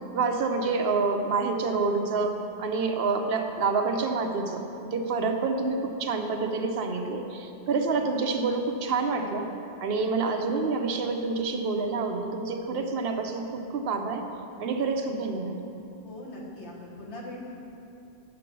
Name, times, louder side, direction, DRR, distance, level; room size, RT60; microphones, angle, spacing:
voice 1, 0.1-9.5 9.8-14.2 14.6-15.6, right 4 dB, 65° right, 4 dB, 0.9 m, -28 dB
voice 2, 16.0-17.6, left 1 dB, 85° left, -4 dB, 1.7 m, -41 dB
6.8 x 6.4 x 6.0 m, 2.7 s
omnidirectional pair, 1.1 m